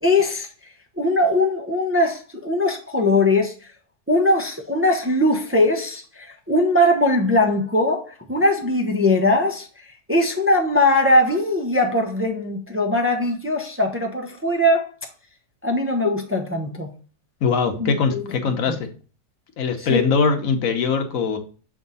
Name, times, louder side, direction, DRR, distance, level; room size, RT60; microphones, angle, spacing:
voice 1, 0.0-0.5 1.0-3.5 4.1-9.7 10.1-14.8 15.6-16.9 17.8-18.3 18.7-18.8 19.8-20.0, left 1 dB, 20° right, 0.3 m, -20 dB
voice 2, 17.4-18.9 19.6-21.4, left 5 dB, 60° left, 1.2 m, -21 dB
6.9 x 3.6 x 3.9 m
omnidirectional pair, 1.7 m